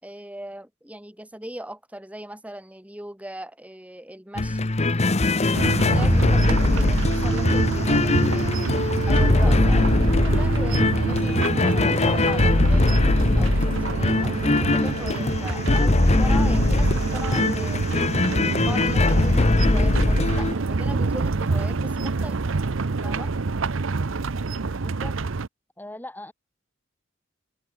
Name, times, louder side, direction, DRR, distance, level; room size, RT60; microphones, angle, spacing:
voice 1, 0.0-4.7 5.4-8.8 9.1-12.9 13.4-17.8 18.4-22.5 23.0-23.3, right 1 dB, 5° right, 3.6 m, -38 dB
sound 1, 4.4-20.5, left 2 dB, 35° left, 0.9 m, -21 dB
sound 2, 5.5-25.5, right 3 dB, 75° right, 0.7 m, -27 dB
voice 2, 25.8-26.3, left 1 dB, 10° left, 6.3 m, -39 dB
open air
head